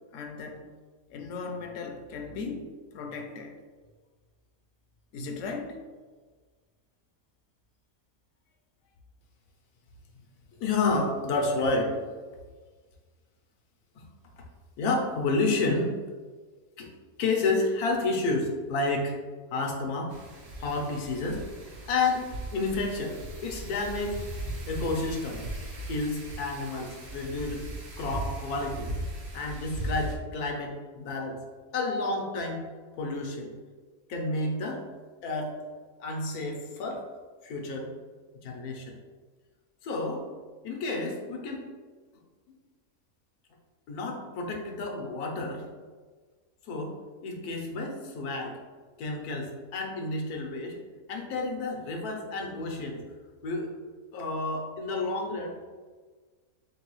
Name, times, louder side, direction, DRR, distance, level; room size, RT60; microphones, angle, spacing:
voice 1, 0.1-0.6 1.1-2.7 2.9-3.6 5.1-5.8, left 4 dB, 70° left, 4 dB, 0.9 m, -37 dB
voice 2, 10.6-11.9 13.9-14.0 14.4-14.5 14.8-16.0 16.8-16.9 17.2-19.2 19.5-20.1 20.6-21.4 21.9-22.3 22.5-24.2 24.7-25.4 25.9-27.7 28.0-28.9 29.3-31.4 31.7-32.6 33.0-33.5 34.1-34.8 35.2-35.6 36.0-37.0 37.4-37.9 38.4-39.0 39.8-40.3 40.6-41.6 43.9-45.7 46.6-47.0 47.2-48.6 49.0-50.8 51.1-53.0 53.4-53.7 54.1-55.6, left 3 dB, 85° left, 1 dB, 1.3 m, -30 dB
Wind, 20.1-30.1, right 1 dB, 55° right, 0.9 m, -38 dB
3.9 x 3.7 x 3.0 m, 1.4 s
omnidirectional pair, 1.5 m